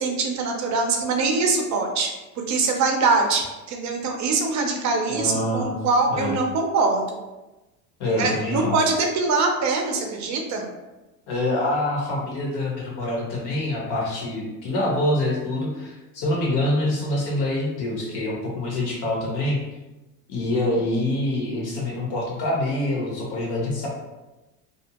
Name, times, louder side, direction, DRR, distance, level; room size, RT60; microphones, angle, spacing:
voice 1, 0.0-2.1 2.5-7.2 8.2-10.6, right 3 dB, 40° right, 3 dB, 0.6 m, -23 dB
voice 2, 5.1-5.7 6.1-6.3 8.0-8.7 11.3-19.6 20.3-23.9, left 1 dB, 55° left, -2 dB, 1.1 m, -25 dB
2.7 x 2.0 x 2.8 m, 1.1 s
hypercardioid pair, 90°, 48 cm